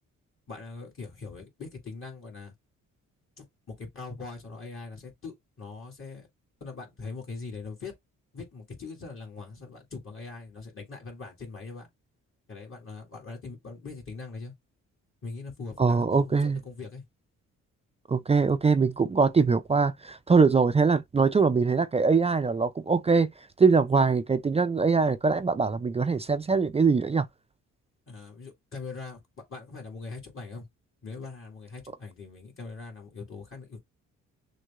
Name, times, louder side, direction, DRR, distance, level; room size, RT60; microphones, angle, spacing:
voice 1, 0.5-2.5 3.4-6.3 6.6-7.9 8.3-11.9 12.5-14.5 15.2-17.0 28.1-29.2 29.5-30.7 31.0-33.8, left 4 dB, 45° left, 2.2 m, -41 dB
voice 2, 15.8-16.6 18.1-23.3 23.6-27.3, right 4 dB, 20° right, 0.4 m, -22 dB
6.3 x 2.2 x 3.6 m
cardioid pair, 90°, 30 cm